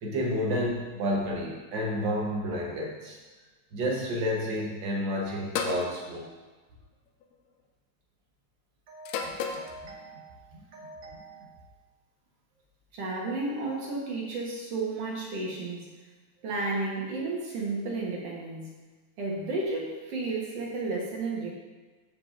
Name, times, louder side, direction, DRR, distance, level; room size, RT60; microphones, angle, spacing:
voice 1, 0.0-3.2 3.7-6.3 8.9-10.4 10.7-11.5, equal, 80° right, -2 dB, 1.0 m, -31 dB
sound 1, 5.5-5.9 7.1-7.4 9.0-9.7, left 6 dB, 80° left, 1.7 m, -32 dB
voice 2, 12.9-15.9 16.4-18.8 19.2-21.5, right 3 dB, 60° right, -3 dB, 2.1 m, -32 dB
14.0 x 4.7 x 2.5 m, 1.3 s
omnidirectional pair, 3.5 m